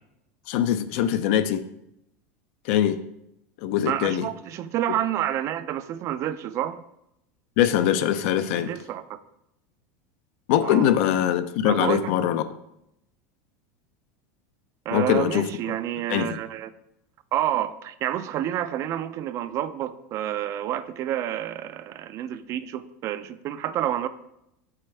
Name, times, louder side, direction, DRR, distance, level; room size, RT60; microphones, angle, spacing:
voice 1, 0.5-1.6 2.6-3.0 3.6-4.3 7.6-8.7 10.5-12.4 14.9-15.5 16.1-16.4, left 10 dB, 65° left, 12 dB, 0.5 m, -22 dB
voice 2, 3.9-6.8 8.6-9.2 10.6-10.9 11.6-12.2 14.9-16.7 17.3-24.1, right 11 dB, 40° right, 13 dB, 0.3 m, -29 dB
7.3 x 4.4 x 3.3 m, 0.82 s
supercardioid pair, 130°, 8 cm